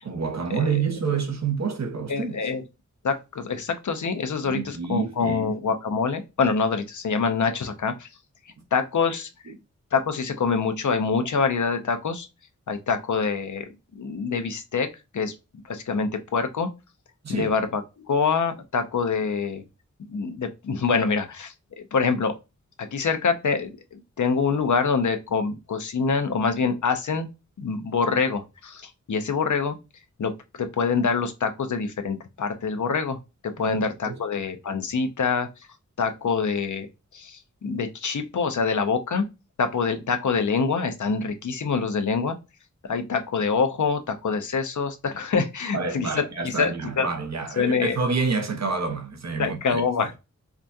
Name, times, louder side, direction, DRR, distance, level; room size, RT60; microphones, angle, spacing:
voice 1, 0.0-2.4 4.4-5.4 17.2-17.5 33.7-33.8 34.0-34.2 45.7-49.8, right 5 dB, 65° right, 0.9 m, -28 dB
voice 2, 2.1-2.6 3.0-8.1 8.7-9.3 9.9-12.3 12.7-13.7 14.0-14.9 15.1-15.3 15.7-16.7 17.3-19.6 20.1-22.3 22.8-27.3 27.6-29.8 30.2-30.3 30.6-33.2 33.6-35.5 36.0-36.9 37.1-39.3 39.6-42.3 42.8-47.1 47.6-48.0 49.4-50.2, left 5 dB, 85° left, 0.7 m, -25 dB
4.8 x 2.3 x 2.6 m
wide cardioid pair, 100°, 29 cm